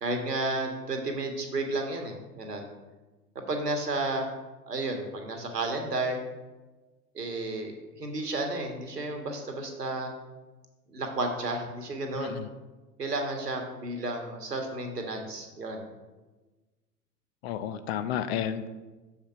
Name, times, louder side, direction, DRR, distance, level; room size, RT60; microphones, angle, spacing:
voice 1, 0.0-2.7 3.3-4.3 4.7-6.2 7.1-10.1 10.9-12.4 13.0-15.8, right 2 dB, 80° right, 3 dB, 1.6 m, -32 dB
voice 2, 12.2-12.5 17.4-18.7, left 9 dB, 40° left, 11 dB, 0.7 m, -32 dB
7.0 x 5.8 x 5.6 m, 1.2 s
figure-of-eight pair, 90°, 47 cm